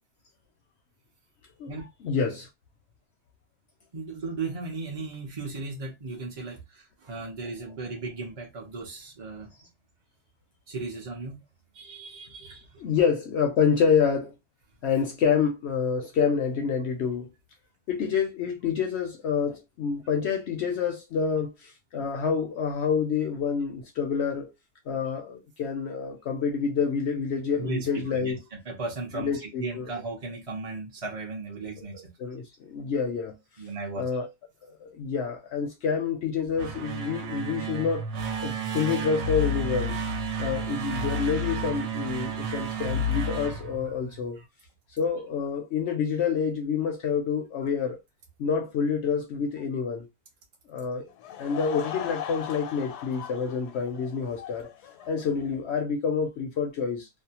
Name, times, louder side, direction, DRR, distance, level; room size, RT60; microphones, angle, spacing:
voice 1, 2.0-2.5 12.8-14.3 14.8-17.3 17.9-24.5 24.9-28.4 29.1-29.9 32.2-33.4 34.0-34.3 34.8-38.0 38.4-40.0 40.4-44.4 44.9-48.0 48.4-50.0 50.7-51.1 51.4-54.7 55.1-57.1, left 6 dB, 70° left, 0.6 m, -27 dB
voice 2, 3.9-9.7 10.7-11.4 11.7-12.9 27.6-32.1 33.6-34.1 43.3-43.4 44.4-44.5, right 3 dB, 45° right, 0.4 m, -36 dB
sound 1, 36.5-44.4, right 1 dB, 70° right, 1.0 m, -31 dB
Laughter / Crowd, 51.1-55.6, left 10 dB, 85° left, 1.1 m, -39 dB
2.6 x 2.1 x 2.8 m
omnidirectional pair, 1.6 m